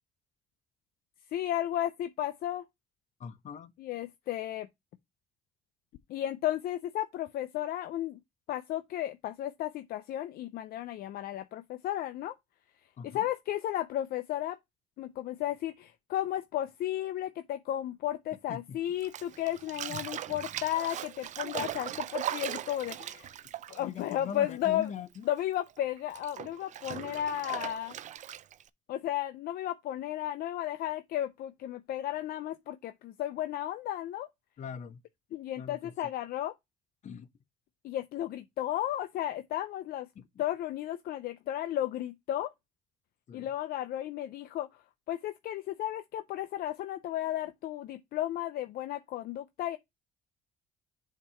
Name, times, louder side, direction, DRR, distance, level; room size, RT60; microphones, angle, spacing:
voice 1, 1.3-2.6 3.8-4.7 6.1-8.2 8.5-12.3 13.0-14.6 15.0-23.3 23.7-24.9 25.2-28.0 28.9-34.3 35.3-36.5 37.8-40.1 40.4-42.5 43.3-44.7 45.1-49.8, left 12 dB, 65° left, 0.5 m, -34 dB
voice 2, 3.2-3.7 13.0-13.3 18.5-18.8 23.8-25.3 34.6-35.0 35.6-36.1 37.0-37.3 40.1-40.2 43.3-43.5, left 7 dB, 45° left, 0.9 m, -42 dB
Bathtub (filling or washing), 19.0-24.9 25.1-28.7, right 11 dB, 45° right, 0.4 m, -39 dB
7.2 x 2.9 x 5.5 m
cardioid pair, 110°, 17 cm